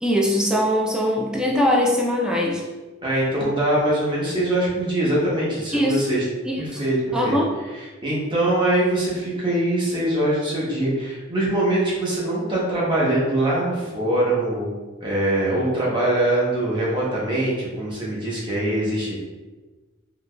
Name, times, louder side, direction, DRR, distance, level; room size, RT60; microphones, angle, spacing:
voice 1, 0.0-2.6 5.7-6.8 7.1-7.5, equal, 5° right, -2 dB, 0.4 m, -22 dB
voice 2, 3.0-6.2 6.6-7.4 8.0-14.7 15.0-19.1, right 1 dB, 25° right, -6 dB, 0.9 m, -23 dB
3.8 x 2.8 x 2.2 m, 1.2 s
head